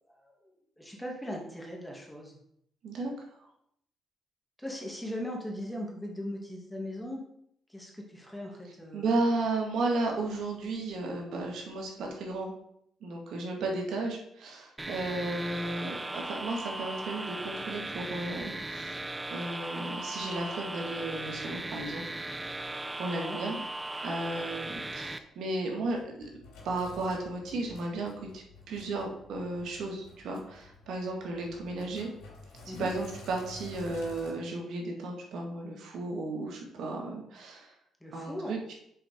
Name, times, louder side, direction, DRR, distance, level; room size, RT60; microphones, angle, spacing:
voice 1, 0.1-2.4 4.6-7.2 7.7-9.2 23.0-23.4 32.7-32.9 38.0-38.5, left 1 dB, 5° left, -1 dB, 2.1 m, -39 dB
voice 2, 8.9-12.5 13.0-19.0 19.3-22.0 22.4-22.6 23.0-23.6 24.0-26.2 26.6-32.1 32.7-37.7 38.1-38.7, right 2 dB, 75° right, 0 dB, 1.9 m, -34 dB
sound 1, 14.8-25.2, right 2 dB, 15° right, 0.5 m, -38 dB
Sink (filling or washing), 25.5-34.3, left 3 dB, 85° left, 2.5 m, -50 dB
6.8 x 4.2 x 5.1 m, 0.73 s
cardioid pair, 90°, 0 cm